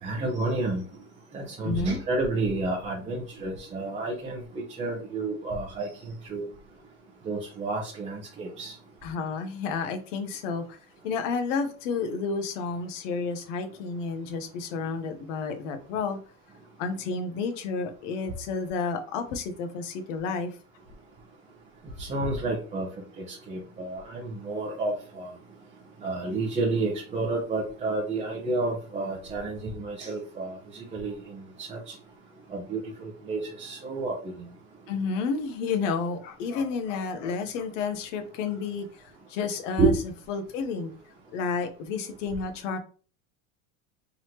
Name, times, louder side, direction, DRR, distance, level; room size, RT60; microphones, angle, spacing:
voice 1, 0.0-0.8 1.3-6.5 7.2-8.7 22.0-22.9 23.2-25.3 26.0-31.9 32.5-34.4 39.8-40.0, right 3 dB, 15° right, 0.7 m, -30 dB
voice 2, 1.6-2.0 9.0-10.8 11.0-16.2 16.8-20.6 34.9-39.0 39.3-39.9 40.3-40.9 41.3-42.8, left 5 dB, 70° left, 0.9 m, -31 dB
3.9 x 3.1 x 2.9 m
supercardioid pair, 155°, 39 cm